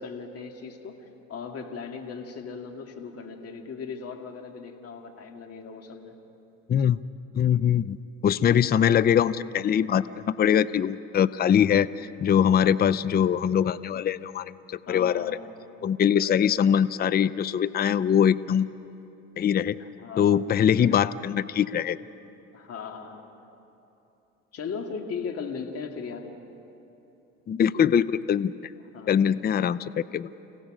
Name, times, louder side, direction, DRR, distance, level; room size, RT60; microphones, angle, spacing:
voice 1, 0.0-6.1 14.9-15.6 19.8-20.9 22.5-23.3 24.5-26.3 28.9-29.4, left 5 dB, 50° left, 4 dB, 2.2 m, -38 dB
voice 2, 7.3-8.0 8.2-15.4 15.8-18.7 19.4-19.8 20.2-22.0 27.5-28.5 29.1-30.3, left 8 dB, 30° left, 17 dB, 0.5 m, -22 dB
30.0 x 17.0 x 5.1 m, 2.9 s
hypercardioid pair, 70°, 32 cm